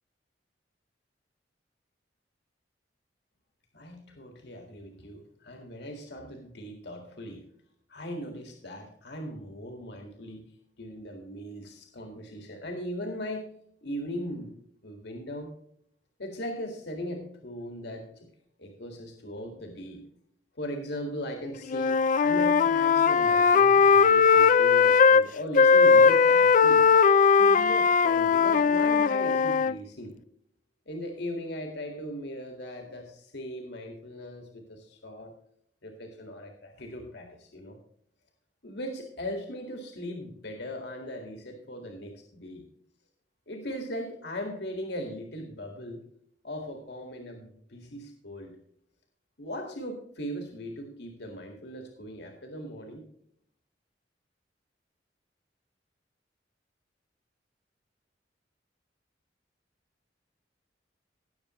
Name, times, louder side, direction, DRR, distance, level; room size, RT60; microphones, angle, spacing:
voice 1, 3.7-7.4 7.9-10.4 10.8-13.5 13.8-14.5 14.8-15.5 16.2-18.3 18.6-20.0 20.6-26.9 27.4-30.1 30.9-35.3 35.8-37.8 38.6-42.6 43.5-46.0 46.4-48.6 49.4-53.0, equal, 70° left, 3 dB, 1.9 m, -38 dB
Wind instrument woodwind instrument, 21.7-25.2 25.5-29.8, left 5 dB, 45° left, 0.4 m, -19 dB
18.0 x 6.9 x 3.1 m, 0.69 s
head